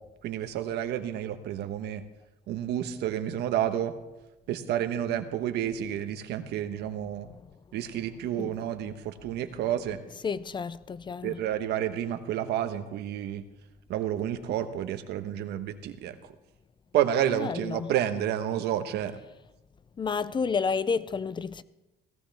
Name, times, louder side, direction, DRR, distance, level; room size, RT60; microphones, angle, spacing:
voice 1, 0.2-2.0 2.5-3.9 4.5-7.3 7.7-10.0 11.2-13.4 13.9-16.3 16.9-19.2, right 10 dB, 80° right, 1.3 m, -30 dB
voice 2, 10.2-11.4 17.4-17.9 20.0-21.6, left 5 dB, 25° left, 0.5 m, -30 dB
17.5 x 16.0 x 3.5 m
cardioid pair, 110°, 17 cm